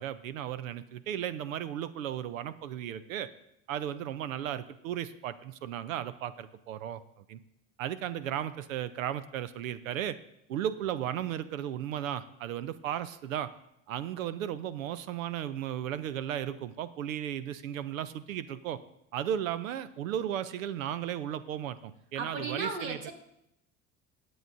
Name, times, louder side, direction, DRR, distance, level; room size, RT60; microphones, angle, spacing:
voice 1, 0.0-3.3 3.7-7.0 7.3-7.4 7.8-10.2 10.5-13.5 13.9-18.8 19.1-23.0, right 10 dB, 80° right, 15 dB, 0.6 m, -35 dB
voice 2, 22.2-23.1, right 4 dB, 60° right, 2 dB, 2.0 m, -35 dB
19.5 x 7.8 x 2.6 m, 0.80 s
hypercardioid pair, 60°, 40 cm